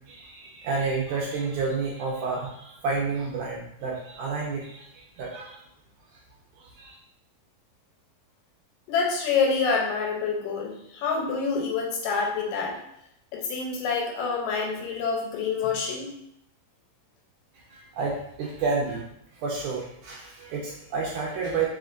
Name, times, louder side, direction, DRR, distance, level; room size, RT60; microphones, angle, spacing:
voice 1, 0.1-5.6 6.6-7.0 17.7-19.0 19.3-21.7, right 4 dB, 80° right, -3 dB, 1.8 m, -30 dB
voice 2, 8.9-12.8 13.3-16.1, left 5 dB, 80° left, -1 dB, 2.3 m, -27 dB
5.1 x 3.3 x 2.5 m, 0.76 s
omnidirectional pair, 4.1 m